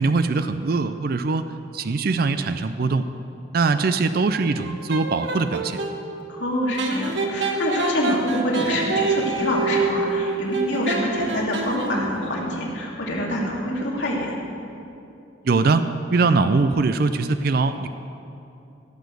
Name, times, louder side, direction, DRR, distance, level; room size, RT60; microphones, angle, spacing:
voice 1, 0.0-1.5 1.7-3.1 3.5-5.8 15.4-17.9, right 3 dB, 50° right, 10 dB, 0.4 m, -22 dB
sound 1, 4.6-6.0 6.8-12.2, right 3 dB, 70° right, 1.0 m, -26 dB
voice 2, 6.3-14.3, equal, 65° left, -3 dB, 2.4 m, -26 dB
16.5 x 6.3 x 6.6 m, 2.7 s
head